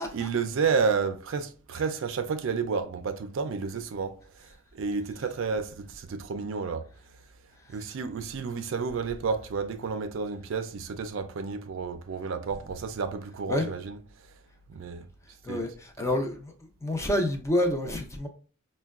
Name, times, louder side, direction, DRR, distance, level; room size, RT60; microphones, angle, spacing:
voice 1, 0.1-4.2 4.7-6.8 7.7-14.0 14.7-15.1 15.5-15.6, right 5 dB, 65° right, 0.4 m, -31 dB
voice 2, 15.4-18.3, left 1 dB, 15° left, 0.5 m, -28 dB
5.4 x 2.2 x 2.3 m
head